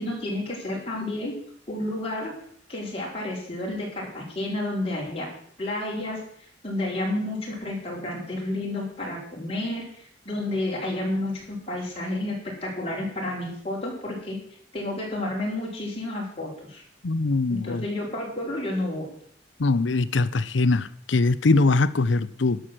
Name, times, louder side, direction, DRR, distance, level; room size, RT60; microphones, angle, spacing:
voice 1, 0.0-1.3 1.7-2.3 2.7-5.3 5.6-6.2 6.6-9.8 10.2-14.4 14.7-16.8 17.5-19.1, left 1 dB, 30° left, -3 dB, 4.6 m, -30 dB
voice 2, 17.0-17.8 19.6-22.6, left 3 dB, 80° left, 15 dB, 0.7 m, -22 dB
11.5 x 6.3 x 7.6 m, 0.62 s
head